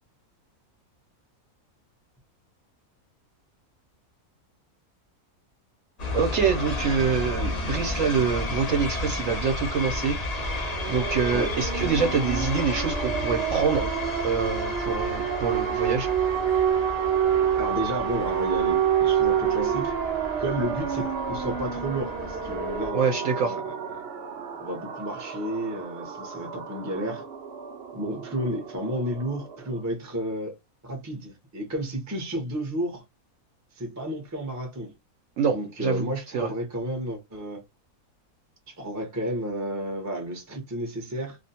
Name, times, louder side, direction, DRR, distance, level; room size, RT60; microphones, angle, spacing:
sound 1, 6.0-22.9, left 2 dB, 50° left, 0.5 m, -33 dB
voice 1, 6.1-10.2 10.9-13.9 14.2-16.1 22.9-23.6 35.4-36.1 36.3-36.5, right 6 dB, 70° right, 0.8 m, -25 dB
sound 2, 10.4-29.8, right 8 dB, 90° right, 0.5 m, -29 dB
voice 2, 17.6-19.9 20.4-24.0 24.6-27.2 27.9-30.6 30.8-33.0 33.7-34.9 35.5-37.6 38.7-41.4, right 1 dB, 25° right, 0.3 m, -32 dB
2.5 x 2.1 x 2.7 m
omnidirectional pair, 1.6 m